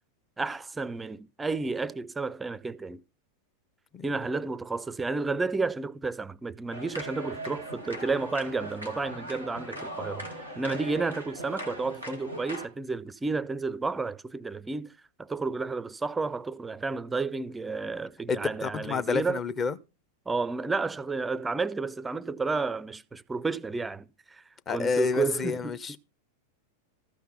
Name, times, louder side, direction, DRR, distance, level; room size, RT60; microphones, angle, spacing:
voice 1, 0.4-3.0 4.0-14.9 15.2-19.4 20.3-26.0, right 4 dB, 10° right, 0.5 m, -31 dB
sound 1, 6.7-12.7, right 1 dB, 90° left, 2.3 m, -39 dB
voice 2, 18.3-19.8 24.7-26.0, left 5 dB, 25° left, 0.8 m, -29 dB
14.0 x 5.8 x 5.7 m
figure-of-eight pair, 90°, 0 cm